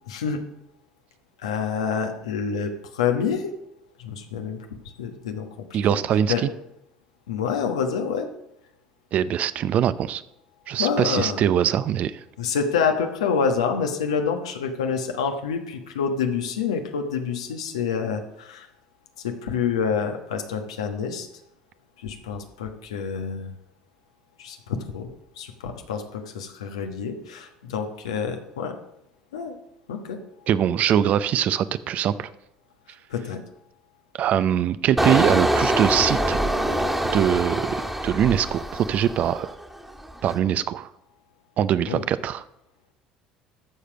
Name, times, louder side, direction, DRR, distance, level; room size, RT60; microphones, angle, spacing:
voice 1, 0.1-0.4 1.4-3.5 4.0-4.6 5.0-6.5 7.3-8.3 10.7-11.4 12.4-18.7 19.2-21.3 22.0-23.5 24.4-25.1 25.4-28.8 29.3-29.6 29.9-30.2 33.1-33.4 41.8-42.0, left 6 dB, 85° left, 5 dB, 1.2 m, -27 dB
voice 2, 5.7-6.5 9.1-10.2 10.7-12.2 30.5-32.3 34.1-36.4 37.1-39.5 40.2-40.9 41.6-42.4, right 10 dB, 55° right, 15 dB, 0.6 m, -22 dB
Engine, 35.0-39.6 40.0-40.3, right 1 dB, 5° right, 1.6 m, -24 dB
13.5 x 5.0 x 6.2 m, 0.85 s
hypercardioid pair, 70°, 3 cm